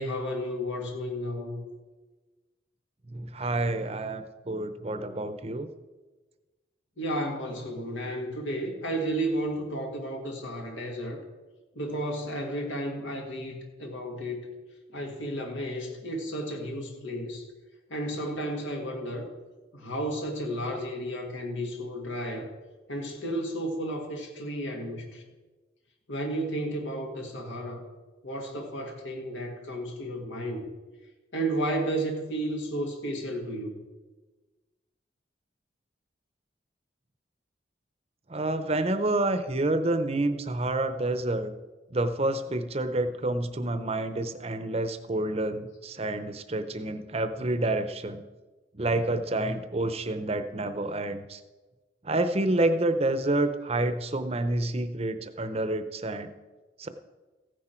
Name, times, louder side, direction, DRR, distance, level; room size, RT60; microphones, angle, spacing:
voice 1, 0.0-1.6 7.0-11.2 11.8-14.5 14.9-17.4 17.9-19.3 19.7-22.5 22.9-25.2 26.1-27.8 28.2-30.6 31.3-33.8, right 1 dB, 85° left, 1 dB, 1.9 m, -32 dB
voice 2, 3.1-5.7 38.3-41.5 41.9-48.2 48.7-51.4 52.0-56.3 56.8-56.9, right 2 dB, 35° right, 10 dB, 0.7 m, -28 dB
15.0 x 9.9 x 4.5 m, 1.2 s
head